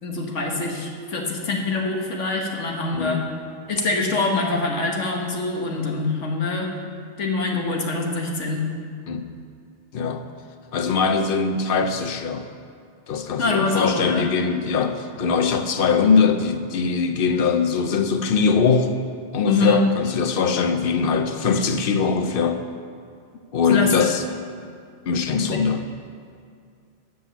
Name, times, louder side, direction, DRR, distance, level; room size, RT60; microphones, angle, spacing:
voice 1, 0.0-3.2 3.7-6.7 7.2-8.7 13.4-14.3 19.5-19.8 23.7-24.1 25.3-25.5, left 3 dB, 90° left, 1 dB, 1.5 m, -24 dB
voice 2, 2.9-3.2 9.1-9.3 9.9-10.2 10.7-12.4 13.1-18.9 19.3-22.6 23.5-24.2 25.1-25.8, left 5 dB, 55° left, 8 dB, 0.8 m, -21 dB
7.8 x 7.4 x 7.0 m, 2.2 s
omnidirectional pair, 1.2 m